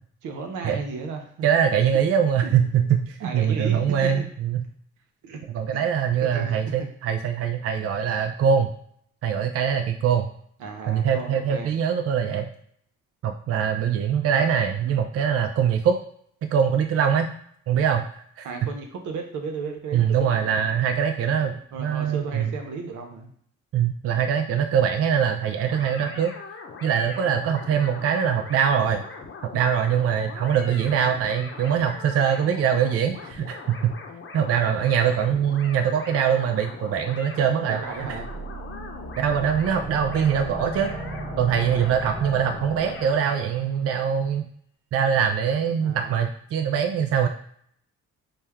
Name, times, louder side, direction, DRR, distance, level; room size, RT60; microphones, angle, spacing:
voice 1, 0.2-1.3 2.4-2.5 3.2-4.2 5.2-5.4 5.7-5.8 6.2-6.5 10.6-11.7 18.4-20.9 21.7-23.3 37.7-38.3 45.8-46.2, right 4 dB, 85° right, 3 dB, 0.8 m, -34 dB
voice 2, 1.4-4.6 5.5-8.7 9.2-10.3 10.9-12.5 13.2-16.0 16.4-17.3 17.7-18.1 18.4-18.5 19.9-22.5 23.7-26.3 26.8-29.0 29.5-33.9 34.3-37.8 39.2-40.9 41.4-44.5 44.9-47.3, right 8 dB, 50° right, 5 dB, 0.4 m, -23 dB
sound 1, 25.6-43.4, left 4 dB, 45° left, 0.8 m, -41 dB
sound 2, 37.9-43.5, right 2 dB, 10° right, 1.1 m, -36 dB
4.3 x 2.2 x 3.5 m, 0.64 s
cardioid pair, 90°, 30 cm